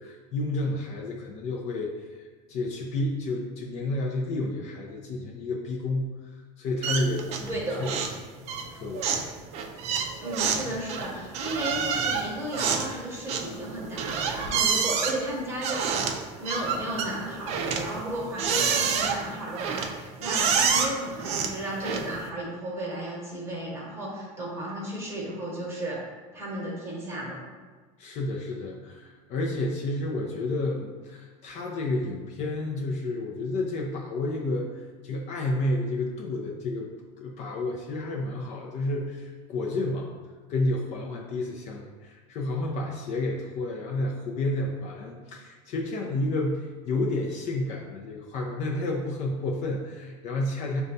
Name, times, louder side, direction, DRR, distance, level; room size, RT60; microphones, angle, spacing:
voice 1, 0.0-8.0 8.7-9.1 10.7-10.8 28.0-34.7 35.0-36.9 37.2-40.1 40.5-50.8, left 2 dB, 45° left, 0 dB, 0.5 m, -30 dB
sound 1, 6.8-7.6 7.8-8.2 8.5-22.3, right 6 dB, 40° right, 0.4 m, -28 dB
voice 2, 7.5-7.8 10.2-26.0 26.3-27.4, right 1 dB, 15° right, -4 dB, 1.0 m, -34 dB
6.3 x 2.3 x 2.6 m, 1.4 s
supercardioid pair, 145°, 17 cm